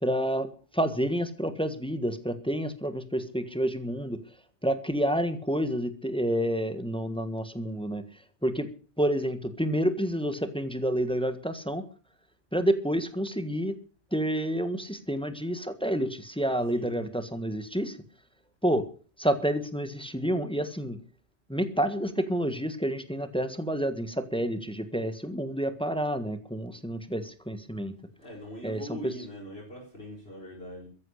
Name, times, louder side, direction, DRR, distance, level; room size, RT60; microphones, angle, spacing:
voice 1, 0.0-4.2 4.6-8.0 8.4-8.7 9.0-11.8 12.5-13.7 14.1-18.0 18.6-18.9 19.2-21.0 21.5-27.9 28.6-29.1, equal, 5° left, 10 dB, 1.5 m, -29 dB
voice 2, 16.7-17.1 28.2-30.9, equal, 65° left, -2 dB, 5.4 m, -42 dB
14.5 x 11.0 x 6.6 m, 0.40 s
omnidirectional pair, 1.1 m